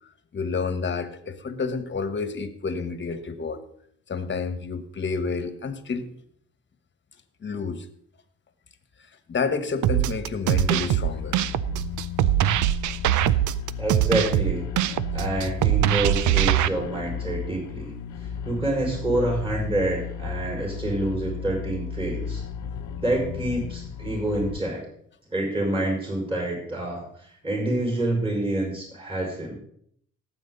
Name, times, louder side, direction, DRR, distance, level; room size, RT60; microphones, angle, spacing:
voice 1, 0.3-3.6 4.1-6.1 7.4-7.9 9.3-11.4, left 4 dB, 40° left, 10 dB, 1.4 m, -29 dB
sound 1, 9.8-16.7, right 14 dB, 75° right, 0.5 m, -22 dB
sound 2, 10.6-24.6, left 7 dB, 70° left, 0.9 m, -34 dB
voice 2, 13.8-14.6 15.1-17.9 18.4-22.4 23.0-24.8 25.3-27.1 27.4-29.5, right 1 dB, 20° right, 0 dB, 5.4 m, -27 dB
18.0 x 7.9 x 4.1 m, 0.66 s
cardioid pair, 90°, 30 cm